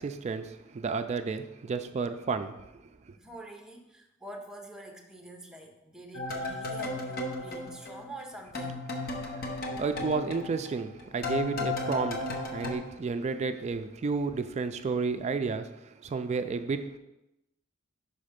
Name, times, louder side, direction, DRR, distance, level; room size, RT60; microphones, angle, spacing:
voice 1, 0.0-2.6 2.8-3.2 9.1-17.0, right 4 dB, 35° right, 9 dB, 0.3 m, -32 dB
voice 2, 3.2-8.8, right 1 dB, 5° right, 2 dB, 0.7 m, -46 dB
sound 1, 6.1-8.3 8.5-12.8, left 2 dB, 50° left, 0.8 m, -35 dB
5.5 x 4.2 x 5.1 m, 0.92 s
head